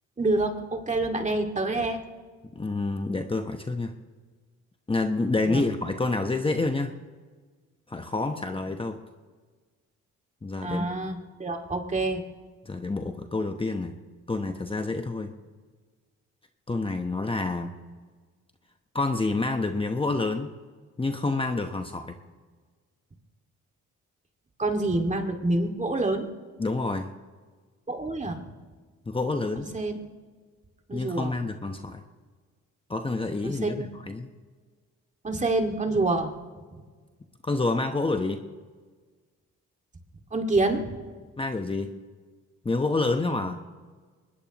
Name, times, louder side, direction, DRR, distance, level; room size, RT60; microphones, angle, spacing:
voice 1, 0.2-2.0 5.5-5.6 10.6-12.2 24.6-26.3 27.9-28.4 29.6-30.0 30.9-31.3 33.4-33.9 35.2-36.3 36.7-36.8 40.3-40.9, right 2 dB, 25° right, 3 dB, 2.2 m, -27 dB
voice 2, 2.5-3.9 4.9-7.0 7.9-9.0 10.4-10.9 12.7-14.0 14.3-15.3 16.7-17.8 18.9-20.5 21.0-22.2 26.6-27.1 29.1-29.7 30.9-32.0 32.9-34.3 37.4-38.4 41.4-41.9 42.6-43.6, left 3 dB, 20° left, 5 dB, 1.0 m, -28 dB
23.0 x 20.0 x 3.0 m, 1.5 s
cardioid pair, 90°, 30 cm